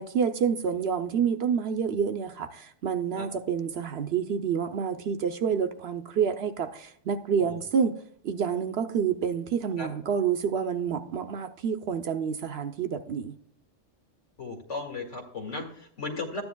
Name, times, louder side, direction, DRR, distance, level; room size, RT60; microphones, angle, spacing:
voice 1, 0.0-8.0 8.2-13.3, right 7 dB, 60° right, 0.8 m, -28 dB
voice 2, 14.4-16.4, left 3 dB, 70° left, 2.2 m, -36 dB
13.0 x 9.6 x 2.2 m
omnidirectional pair, 1.3 m